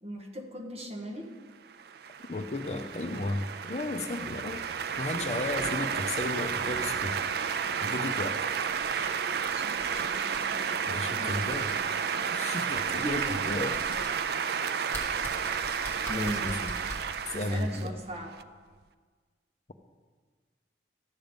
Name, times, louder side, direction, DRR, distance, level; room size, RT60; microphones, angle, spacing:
voice 1, 0.0-1.3 9.5-10.8 11.2-11.6 12.9-13.5 16.1-16.7 17.3-18.3, right 1 dB, 35° right, 1 dB, 1.3 m, -39 dB
sound 1, 1.7-18.4, right 7 dB, 55° right, 0.3 m, -32 dB
voice 2, 2.3-4.6 5.0-7.2 7.7-8.5 10.9-11.7 12.3-14.0 16.1-16.7 17.3-18.0, left 2 dB, 35° left, 7 dB, 0.5 m, -34 dB
sound 2, 6.4-6.9 7.3-7.5 8.0-8.1 8.4-9.1 9.8-10.0 10.3-10.4 11.1-11.8 12.8-14.1 14.9-16.9, left 1 dB, 15° left, 1.9 m, -43 dB
13.0 x 7.5 x 5.2 m, 1.5 s
head